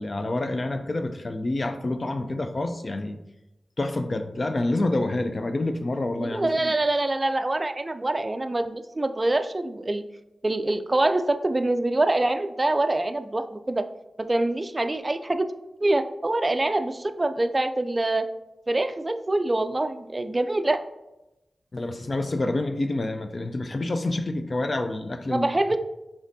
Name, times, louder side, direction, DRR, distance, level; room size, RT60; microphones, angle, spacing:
voice 1, 0.0-3.2 3.8-6.7 21.7-25.5, left 2 dB, 50° left, 8 dB, 0.4 m, -28 dB
voice 2, 6.1-10.0 10.4-13.8 14.2-15.5 15.8-18.3 18.7-20.8 25.3-25.8, right 2 dB, 35° right, 9 dB, 0.3 m, -25 dB
5.0 x 3.5 x 2.6 m, 0.95 s
cardioid pair, 50°, 0 cm